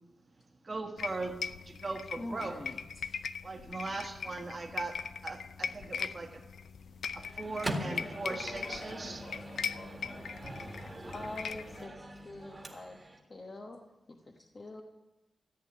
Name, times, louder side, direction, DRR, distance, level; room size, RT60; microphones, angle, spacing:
voice 1, 0.6-1.3 1.6-2.6 3.4-6.4 7.1-9.2, right 3 dB, 35° right, 3 dB, 1.6 m, -39 dB
sound 1, 1.0-11.8, left 6 dB, 80° left, 0.5 m, -40 dB
voice 2, 2.2-3.2 11.1-13.8 14.1-14.8, left 2 dB, 35° left, 2 dB, 1.2 m, -45 dB
Microwave oven, 7.2-13.2, right 1 dB, 15° right, 1.8 m, -42 dB
voice 3, 7.6-10.2 12.4-12.5, left 2 dB, 65° left, -2 dB, 6.0 m, -48 dB
14.5 x 8.4 x 9.6 m, 1.0 s
wide cardioid pair, 135°, 0 cm